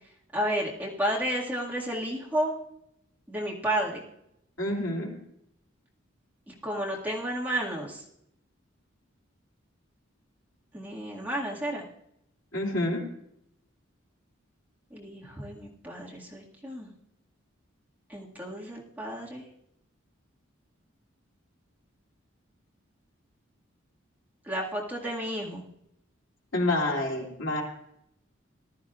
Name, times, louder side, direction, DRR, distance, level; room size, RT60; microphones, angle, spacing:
voice 1, 0.3-2.5 3.3-4.0 6.5-8.0 10.7-11.8 14.9-16.9 18.1-19.4 24.5-25.6, right 1 dB, 10° right, -4 dB, 2.0 m, -32 dB
voice 2, 4.6-5.2 12.5-13.0 26.5-27.6, left 1 dB, 70° left, -2 dB, 2.9 m, -28 dB
19.0 x 12.5 x 2.5 m, 0.78 s
head